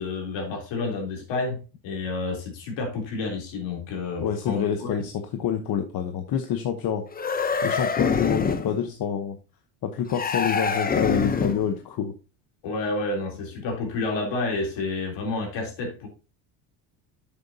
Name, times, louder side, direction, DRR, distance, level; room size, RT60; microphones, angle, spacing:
voice 1, 0.0-5.0 12.6-16.1, left 3 dB, 65° left, 3.4 m, -30 dB
voice 2, 4.2-7.0 7.6-9.4 9.8-12.1, left 8 dB, 50° left, 1.0 m, -27 dB
sound 1, 7.1-8.7 10.1-11.7, left 5 dB, 20° left, 0.7 m, -25 dB
8.6 x 7.0 x 2.8 m
cardioid pair, 120°, 48 cm